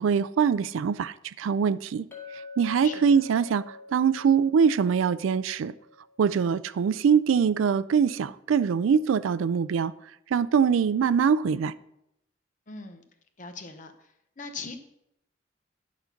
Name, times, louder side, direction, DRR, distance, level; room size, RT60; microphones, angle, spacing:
voice 1, 0.0-2.0 2.6-5.7 6.2-9.9 10.3-11.7, right 6 dB, 85° right, 0.3 m, -23 dB
Chink clink, 2.1-6.6, left 3 dB, 10° left, 1.8 m, -46 dB
voice 2, 2.8-3.2 12.7-13.1 13.4-13.9 14.4-14.8, left 4 dB, 40° left, 0.8 m, -40 dB
10.5 x 4.1 x 5.8 m
head